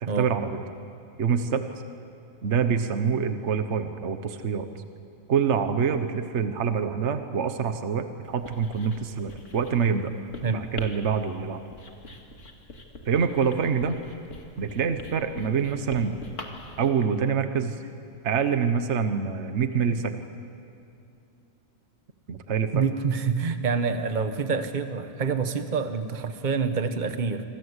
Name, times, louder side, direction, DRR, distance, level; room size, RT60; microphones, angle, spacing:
voice 1, 0.0-0.6 1.2-1.7 2.4-4.7 5.3-10.1 10.5-11.6 13.1-14.0 14.6-16.2 16.8-17.8 18.2-20.1 22.3-22.8, right 6 dB, 55° right, 9 dB, 1.5 m, -26 dB
Writing, 8.3-16.9, left 2 dB, 60° left, 2.6 m, -44 dB
voice 2, 22.7-27.4, right 5 dB, 35° right, 9 dB, 1.3 m, -27 dB
26.0 x 25.5 x 8.2 m, 2.5 s
omnidirectional pair, 1.4 m